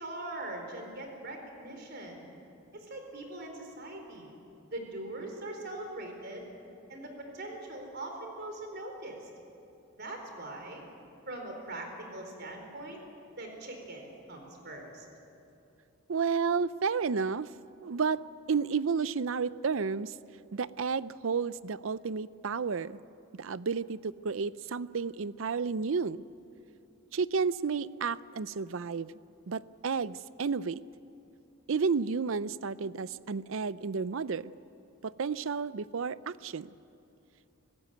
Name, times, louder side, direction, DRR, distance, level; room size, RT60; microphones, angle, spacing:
voice 1, 0.0-2.3 2.8-4.3 4.7-6.5 6.9-9.3 9.9-10.8 11.3-13.0 13.4-15.1, right 1 dB, 50° right, 3 dB, 4.1 m, -41 dB
voice 2, 16.1-17.5 17.8-18.2 18.5-20.1 20.5-23.0 23.4-26.2 27.1-29.1 29.5-30.8 31.7-34.5 35.0-36.7, right 5 dB, 65° right, 17 dB, 0.5 m, -31 dB
25.0 x 15.0 x 9.3 m, 2.8 s
head